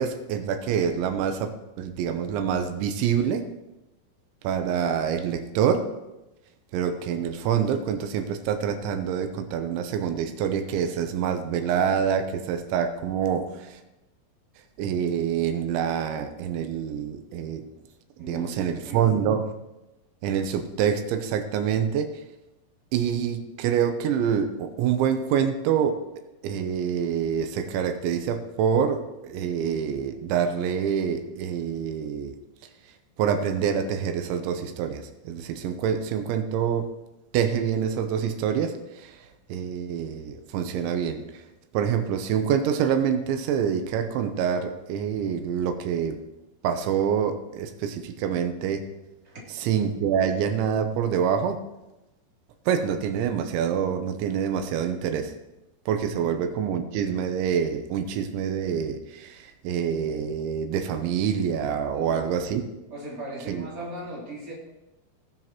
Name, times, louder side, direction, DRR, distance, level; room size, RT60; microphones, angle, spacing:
voice 1, 0.0-3.5 4.4-5.9 6.7-13.8 14.8-17.6 18.3-19.5 20.2-22.1 22.9-26.0 26.4-32.4 33.2-36.9 37.3-41.4 41.7-46.2 46.6-48.8 49.5-51.6 52.7-55.4 55.9-62.6 63.5-63.7, right 8 dB, 90° right, 8 dB, 3.2 m, -26 dB
voice 2, 18.2-19.3 49.2-49.4 56.2-56.3 61.9-62.2 62.9-64.5, right 1 dB, 20° right, -5 dB, 2.8 m, -38 dB
18.5 x 7.5 x 3.0 m, 0.98 s
omnidirectional pair, 5.2 m